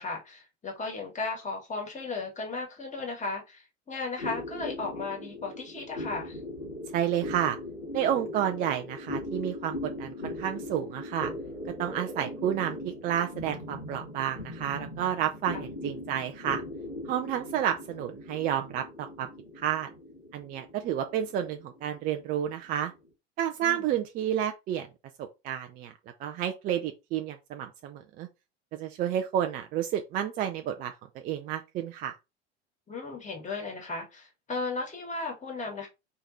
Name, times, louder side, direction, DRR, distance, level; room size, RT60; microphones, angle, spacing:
voice 1, 0.0-6.4 15.5-15.6 23.6-23.9 32.9-35.9, left 3 dB, 20° left, 1.8 m, -35 dB
sound 1, 4.2-22.9, left 1 dB, 80° left, 1.4 m, -39 dB
voice 2, 6.9-7.6 7.9-11.3 11.8-16.6 17.1-19.3 19.6-19.9 20.3-22.9 23.4-24.9 25.2-25.9 26.2-28.3 28.7-30.9 31.2-32.1, right 10 dB, 25° right, 0.4 m, -30 dB
4.6 x 3.2 x 2.6 m
figure-of-eight pair, 75°, 35 cm